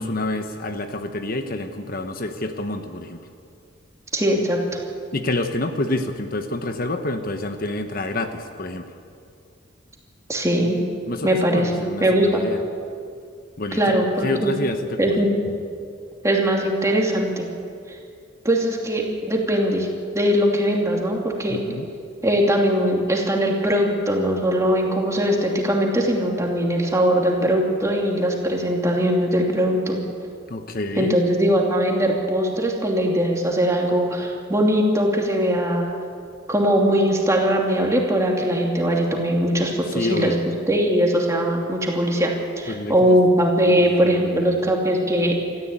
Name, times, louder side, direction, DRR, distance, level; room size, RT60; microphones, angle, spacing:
voice 1, 0.0-3.2 5.1-8.9 11.1-12.6 13.6-14.0 14.2-15.3 21.5-21.9 30.5-31.2 39.9-40.4 42.7-43.2 43.7-44.6, left 2 dB, 50° left, 7 dB, 1.1 m, -28 dB
voice 2, 4.1-4.6 10.3-10.8 11.2-11.7 12.0-12.4 13.7-14.6 15.0-15.3 16.2-17.5 17.9-18.0 18.4-19.9 20.1-21.6 22.2-30.0 31.0-36.0 36.5-40.4 40.7-45.4, equal, 15° right, 0 dB, 2.8 m, -20 dB
22.5 x 14.0 x 8.9 m, 2.4 s
head